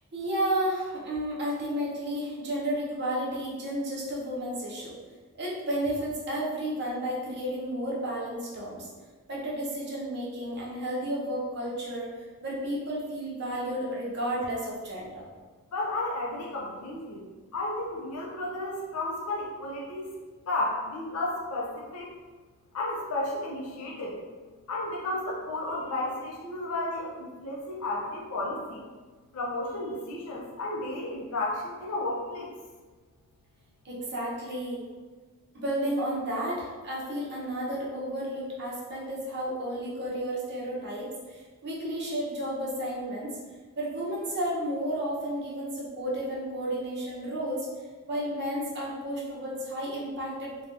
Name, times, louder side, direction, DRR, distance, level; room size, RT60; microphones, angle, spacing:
voice 1, 0.1-5.0 5.4-8.9 9.3-12.1 12.4-15.2 33.8-34.8 35.5-43.4 43.8-47.7 48.1-50.7, right 1 dB, 50° right, -5 dB, 0.9 m, -32 dB
voice 2, 15.7-17.2 17.5-20.1 20.5-22.1 22.7-24.2 24.7-28.9 29.3-32.5, left 2 dB, 70° left, -2 dB, 0.5 m, -33 dB
3.3 x 2.3 x 2.5 m, 1.4 s
head